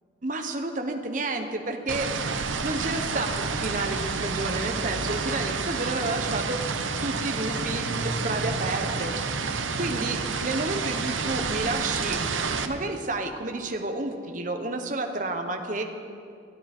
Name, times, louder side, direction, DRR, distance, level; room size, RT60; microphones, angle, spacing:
voice 1, 0.2-9.3 9.8-12.2 12.6-15.8, right 2 dB, 40° right, 4 dB, 1.2 m, -31 dB
sound 1, 1.9-12.7, right 4 dB, 85° right, 0.9 m, -29 dB
21.5 x 14.0 x 4.4 m, 2.4 s
head